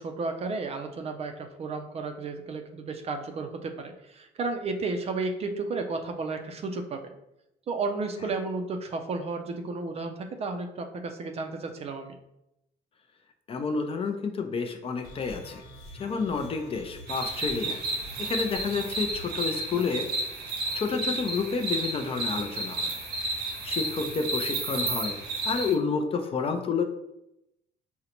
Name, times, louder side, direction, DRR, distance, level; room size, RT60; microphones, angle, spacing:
voice 1, 0.0-7.0 7.7-12.1, right 3 dB, 40° right, 5 dB, 0.4 m, -33 dB
voice 2, 13.5-15.6 16.0-17.8 18.2-20.1 20.7-25.2 25.4-26.8, left 5 dB, 35° left, 5 dB, 0.4 m, -30 dB
sound 1, 15.0-19.4, equal, 65° left, 1.2 m, -46 dB
sound 2, 17.1-25.7, right 2 dB, 80° right, 0.7 m, -32 dB
3.8 x 2.1 x 2.9 m, 0.84 s
cardioid pair, 110°, 17 cm